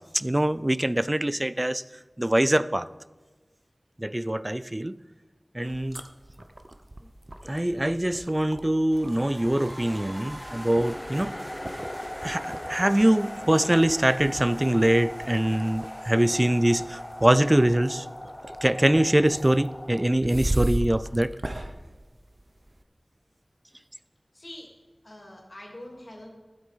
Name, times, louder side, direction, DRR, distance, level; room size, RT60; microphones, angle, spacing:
voice 1, 0.1-1.8 2.2-2.9 4.0-5.0 5.5-6.0 7.5-11.3 12.2-18.1 18.6-21.3, right 1 dB, 25° right, 17 dB, 0.4 m, -23 dB
sound 1, 5.6-22.8, right 1 dB, 40° right, 0.8 m, -38 dB
sound 2, 8.9-18.7, equal, 65° right, 3.9 m, -47 dB
sound 3, 9.6-20.1, left 1 dB, 20° left, 0.7 m, -39 dB
voice 2, 24.3-24.7 25.0-26.3, left 1 dB, 45° left, 0 dB, 3.0 m, -44 dB
12.5 x 7.8 x 5.2 m, 1.2 s
wide cardioid pair, 45°, 0 cm